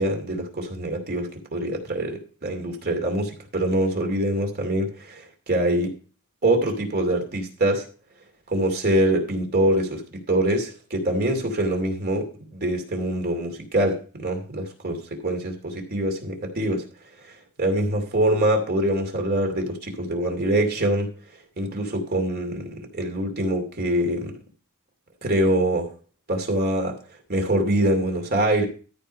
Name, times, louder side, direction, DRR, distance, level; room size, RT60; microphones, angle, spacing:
voice 1, 0.0-6.0 6.4-7.9 8.5-16.8 17.2-17.3 17.6-21.1 21.6-22.6 22.9-24.3 25.2-25.9 26.3-27.0 27.3-28.7, right 1 dB, 45° right, 3 dB, 2.5 m, -24 dB
13.0 x 4.9 x 5.4 m, 0.38 s
head